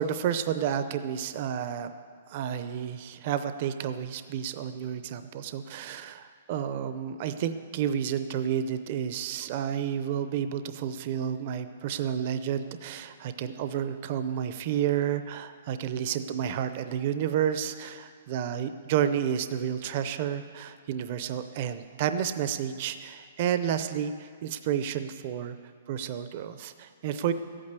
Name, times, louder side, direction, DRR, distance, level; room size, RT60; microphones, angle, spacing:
voice 1, 0.0-1.9 2.3-25.6 25.9-27.3, right 9 dB, 40° right, 10 dB, 0.6 m, -30 dB
14.0 x 8.8 x 8.2 m, 2.1 s
hypercardioid pair, 165°, 0 cm